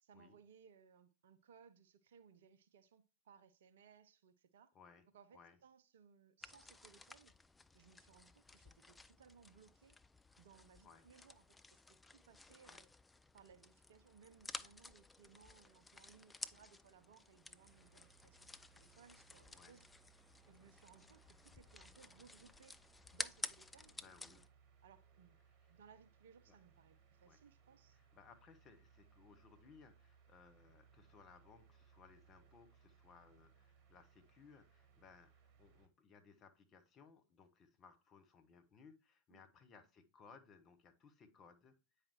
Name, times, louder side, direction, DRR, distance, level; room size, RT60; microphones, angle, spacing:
voice 1, 0.0-4.7 5.1-7.4 7.7-10.0 10.4-12.9 13.3-19.9 20.5-22.8 23.1-24.4 24.8-25.4 25.7-28.0 39.3-39.4, right 6 dB, 60° right, 0.6 m, -65 dB
voice 2, 4.7-5.1 5.3-5.6 10.8-11.0 12.6-12.8 19.5-19.8 24.0-24.4 26.5-26.6 27.2-27.4 27.9-41.8, left 5 dB, 30° left, 0.9 m, -63 dB
sound 1, 6.4-24.5, left 3 dB, 10° left, 0.3 m, -53 dB
sound 2, 17.6-35.9, right 6 dB, 40° right, 1.2 m, -69 dB
8.7 x 4.8 x 3.0 m
figure-of-eight pair, 90°, 0 cm